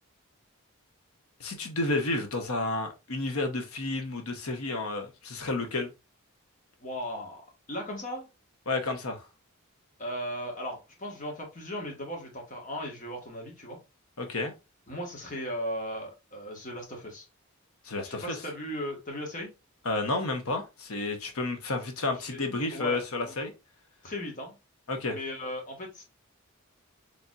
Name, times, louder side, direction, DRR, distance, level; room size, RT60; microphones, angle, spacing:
voice 1, 1.4-5.9 8.7-9.2 14.2-14.5 17.8-18.4 19.8-23.5 24.9-25.2, left 2 dB, 85° left, 0.9 m, -31 dB
voice 2, 6.8-7.4 7.7-8.3 10.0-13.8 14.9-17.3 18.0-19.5 22.3-22.4 22.7-23.3 24.0-24.6 25.1-26.0, equal, 35° left, 1.4 m, -37 dB
4.0 x 3.4 x 2.4 m
head